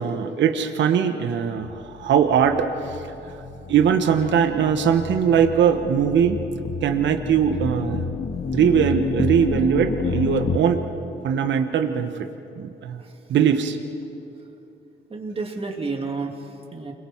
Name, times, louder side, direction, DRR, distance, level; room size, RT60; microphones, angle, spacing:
voice 1, 0.0-3.0 3.7-6.4 6.8-8.1 8.5-10.8 11.2-12.3 12.6-13.0 13.3-13.8, right 8 dB, 65° right, 6 dB, 1.2 m, -21 dB
sound 1, 1.6-10.6, left 5 dB, 45° left, 1.8 m, -30 dB
voice 2, 15.1-16.9, right 3 dB, 30° right, 1 dB, 2.9 m, -31 dB
29.5 x 22.0 x 4.7 m, 2.8 s
cardioid pair, 90°, 20 cm